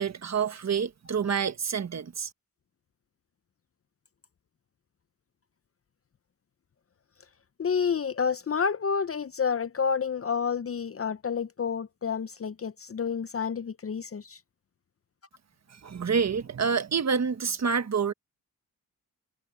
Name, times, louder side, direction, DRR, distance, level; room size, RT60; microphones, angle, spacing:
voice 1, 0.0-2.3 15.8-18.1, right 6 dB, 45° right, 1.4 m, -27 dB
voice 2, 7.6-14.4, left 6 dB, 40° left, 0.7 m, -29 dB
cardioid pair, 70°, 37 cm